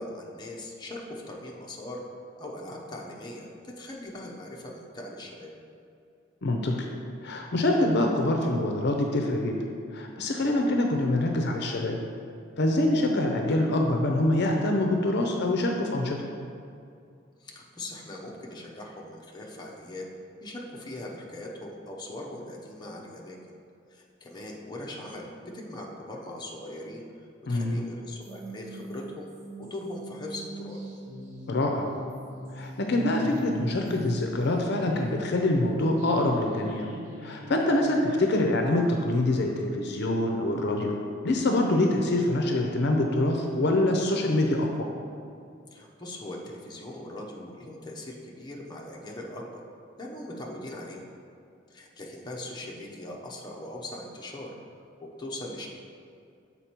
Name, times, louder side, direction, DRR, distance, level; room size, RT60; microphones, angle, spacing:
voice 1, 0.0-2.0 2.4-5.5 10.4-10.5 17.4-20.1 20.4-23.4 23.9-27.0 27.5-29.3 29.6-30.8 37.7-37.8 45.7-49.6 50.0-51.1 51.7-54.5 55.2-55.7, left 1 dB, 20° left, -2 dB, 0.8 m, -40 dB
voice 2, 6.4-6.9 7.2-9.6 9.9-12.0 12.6-16.2 27.5-27.8 31.5-31.9 32.5-36.9 37.2-41.0 41.2-44.9, left 1 dB, 60° left, 2 dB, 0.6 m, -25 dB
sound 1, 28.2-39.5, right 1 dB, 85° right, 1.0 m, -42 dB
7.0 x 4.2 x 4.4 m, 2.4 s
head